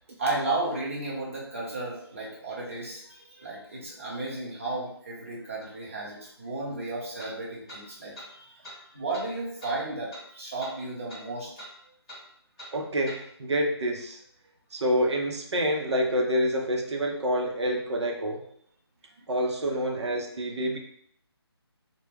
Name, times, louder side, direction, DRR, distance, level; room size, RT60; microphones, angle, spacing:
voice 1, 0.2-11.5, right 2 dB, 30° right, -6 dB, 0.6 m, -34 dB
sound 1, 5.6-5.7 7.2-7.3 7.7-7.8 8.1-8.3 8.6-8.8 9.1-9.3 9.6-9.7 10.1-10.3 10.6-10.8 11.1-11.2 11.6-11.7 12.1-12.2 12.6-12.7 13.1-13.2, equal, 10° left, 0.8 m, -44 dB
voice 2, 12.7-14.2 14.7-18.4 19.3-20.8, equal, 85° right, 1 dB, 0.6 m, -27 dB
2.2 x 2.1 x 3.2 m, 0.67 s
hypercardioid pair, 180°, 14 cm